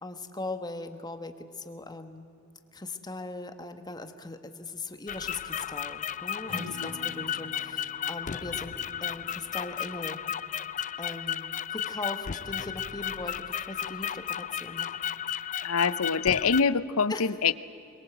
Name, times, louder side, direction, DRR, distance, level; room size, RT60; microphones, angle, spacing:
voice 1, 0.0-2.3 2.7-8.7 9.0-10.2 11.0-14.9 17.1-17.3, left 2 dB, 20° left, 8 dB, 1.4 m, -39 dB
sound 1, 5.1-16.6, left 9 dB, 35° left, 0.5 m, -34 dB
Acoustic guitar / Strum, 6.5-10.5, left 1 dB, 55° right, 7.1 m, -47 dB
voice 2, 15.6-17.5, left 5 dB, 90° left, 16 dB, 0.7 m, -25 dB
23.5 x 22.0 x 8.0 m, 2.7 s
head